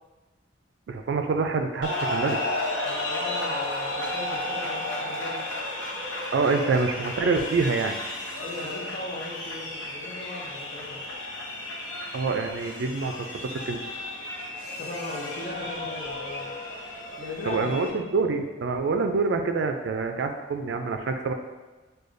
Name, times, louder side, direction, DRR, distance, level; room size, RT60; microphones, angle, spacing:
voice 1, 0.9-2.4 6.3-8.0 12.1-13.1 13.4-13.8 17.5-21.3, right 4 dB, 65° right, 5 dB, 0.3 m, -26 dB
sound 1, 1.8-17.9, left 2 dB, 80° left, 0.7 m, -33 dB
voice 2, 2.8-5.4 8.4-11.0 14.8-16.5 17.2-17.9, left 1 dB, 45° left, -2 dB, 0.7 m, -38 dB
6.5 x 2.3 x 2.5 m, 1.2 s
head